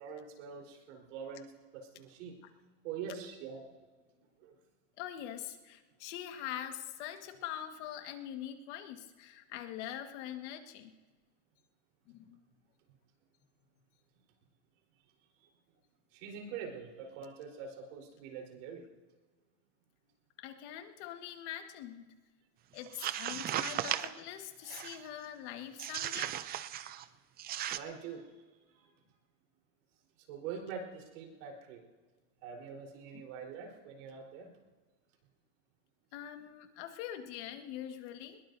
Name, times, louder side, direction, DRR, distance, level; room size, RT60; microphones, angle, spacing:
voice 1, 0.0-1.5 1.7-2.4 2.8-3.7 4.4-4.6 16.1-18.8 27.7-28.9 30.2-31.9 32.4-34.5, right 6 dB, 75° right, 1 dB, 4.1 m, -44 dB
voice 2, 5.0-10.9 12.1-12.4 20.4-22.1 22.7-26.4 33.1-33.2 36.1-38.4, left 11 dB, 65° left, 6 dB, 1.6 m, -43 dB
sound 1, 22.8-24.2 24.7-25.1 25.8-27.1 27.4-27.8, right 12 dB, 25° right, 0.4 m, -36 dB
23.0 x 21.0 x 2.7 m, 1.3 s
supercardioid pair, 145°, 37 cm